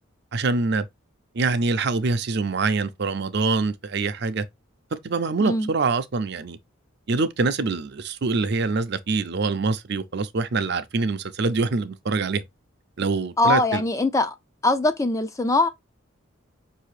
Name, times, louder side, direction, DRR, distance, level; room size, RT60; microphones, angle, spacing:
voice 1, 0.3-0.9 1.3-4.4 5.0-6.6 7.1-12.4 13.0-13.8, right 3 dB, 50° right, 0.5 m, -24 dB
voice 2, 13.4-14.3 14.6-15.7, left 2 dB, 15° left, 0.3 m, -21 dB
5.6 x 2.8 x 3.1 m
head